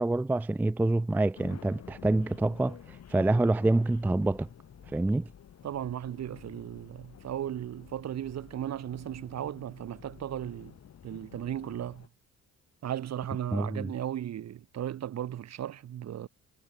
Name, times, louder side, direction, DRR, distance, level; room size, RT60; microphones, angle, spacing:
voice 1, 0.0-4.5 4.9-5.3 13.5-13.9, right 2 dB, 5° right, 0.3 m, -27 dB
sound 1, 1.3-12.1, left 9 dB, 60° left, 4.2 m, -50 dB
voice 2, 5.6-10.7 11.0-12.1 12.8-16.3, right 11 dB, 60° right, 1.4 m, -36 dB
cardioid pair, 90°, 30 cm